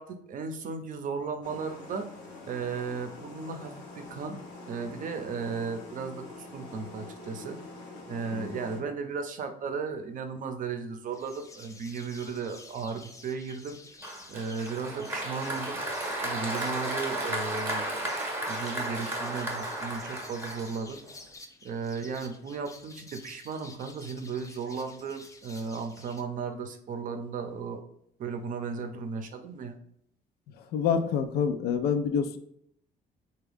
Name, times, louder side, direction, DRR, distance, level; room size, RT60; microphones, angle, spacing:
voice 1, 0.0-2.1 2.4-4.4 4.7-7.6 8.1-13.8 14.3-15.8 16.2-17.9 18.5-21.0 21.6-27.8 28.2-29.8, right 5 dB, 50° right, 6 dB, 0.6 m, -35 dB
sound 1, 1.4-8.8, left 3 dB, 90° left, 1.0 m, -45 dB
sound 2, 11.1-26.2, left 3 dB, 20° left, 0.5 m, -51 dB
Applause, 14.0-21.1, right 1 dB, 15° right, 0.8 m, -34 dB
voice 2, 30.6-32.4, left 7 dB, 70° left, 8 dB, 0.4 m, -27 dB
3.5 x 2.3 x 3.4 m, 0.72 s
cardioid pair, 110°, 17 cm